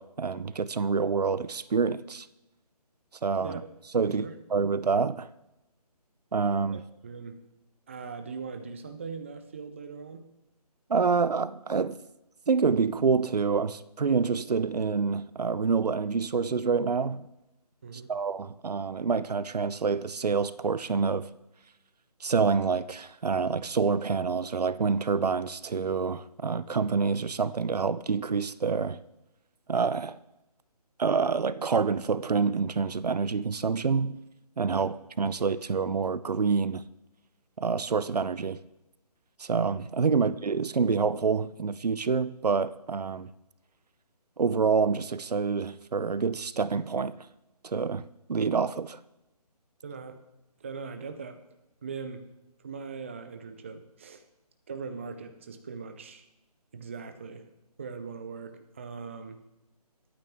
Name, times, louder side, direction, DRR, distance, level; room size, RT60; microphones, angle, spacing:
voice 1, 0.0-2.3 3.2-3.6 3.9-4.2 4.5-5.3 6.3-6.8 10.9-12.0 12.5-17.3 18.1-21.2 22.2-29.0 29.7-30.2 31.0-34.2 34.6-36.8 37.6-38.6 39.4-43.3 44.4-47.1 47.6-48.0 48.3-49.0, right 5 dB, 75° right, 0.8 m, -27 dB
voice 2, 4.0-4.4 6.7-7.4 7.9-10.3 17.8-18.1 34.7-34.9 49.8-50.2 50.6-51.4 51.8-54.2 54.7-56.2 56.7-57.5 57.8-59.4, right 5 dB, 20° right, 0.5 m, -40 dB
22.5 x 9.0 x 3.6 m
hypercardioid pair, 165°, 21 cm